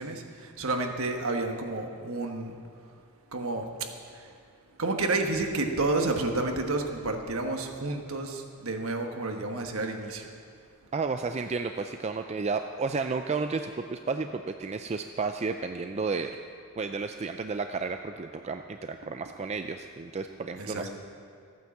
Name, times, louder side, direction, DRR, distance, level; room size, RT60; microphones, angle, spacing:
voice 1, 0.0-2.5 3.3-3.7 4.1-4.3 4.8-10.3 20.6-20.9, right 2 dB, 65° right, 4 dB, 1.4 m, -30 dB
voice 2, 10.9-16.4 16.8-20.9, right 4 dB, 30° right, 6 dB, 0.4 m, -32 dB
14.5 x 9.3 x 7.3 m, 2.4 s
head